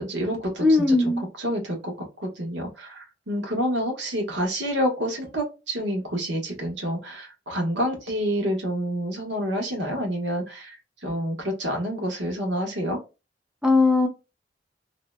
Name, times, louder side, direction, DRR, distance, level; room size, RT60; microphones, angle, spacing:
voice 1, 0.0-1.1 1.4-10.7 11.0-13.0, equal, 85° right, 1 dB, 1.1 m, -28 dB
voice 2, 0.6-1.3 13.6-14.1, left 3 dB, 5° right, 1 dB, 0.4 m, -19 dB
2.7 x 2.1 x 2.2 m, 0.28 s
head